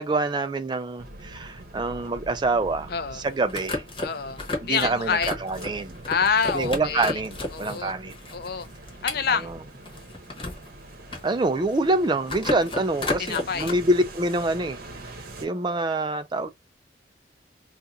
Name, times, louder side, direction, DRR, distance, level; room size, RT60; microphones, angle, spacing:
voice 1, 0.0-3.8 4.6-5.9 6.5-8.2 11.2-14.8 15.4-16.5, right 2 dB, 25° right, 0.3 m, -26 dB
sound 1, 1.0-15.5, right 1 dB, 55° right, 0.9 m, -43 dB
voice 2, 2.9-3.2 4.0-5.4 6.1-7.2 7.5-7.9 8.3-8.7 9.0-9.5 13.2-13.7, left 6 dB, 55° left, 0.4 m, -27 dB
sound 2, 3.2-7.8 8.1-10.7 11.0-11.9 12.2-13.7, left 2 dB, 30° left, 1.0 m, -32 dB
2.8 x 2.5 x 3.4 m
head